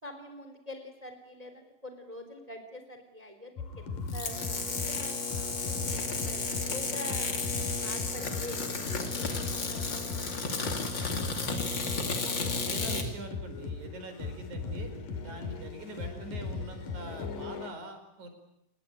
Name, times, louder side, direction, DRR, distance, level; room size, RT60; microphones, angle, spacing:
voice 1, 0.0-7.3 7.8-11.0 15.1-15.4, left 1 dB, 10° right, 7 dB, 3.1 m, -46 dB
sound 1, 3.6-17.7, left 4 dB, 75° left, 4.0 m, -38 dB
sound 2, 4.1-13.1, left 4 dB, 35° left, 3.1 m, -33 dB
voice 2, 12.2-14.9 15.2-18.3, right 2 dB, 60° right, 7 dB, 6.0 m, -44 dB
27.0 x 22.5 x 9.2 m, 0.82 s
omnidirectional pair, 3.9 m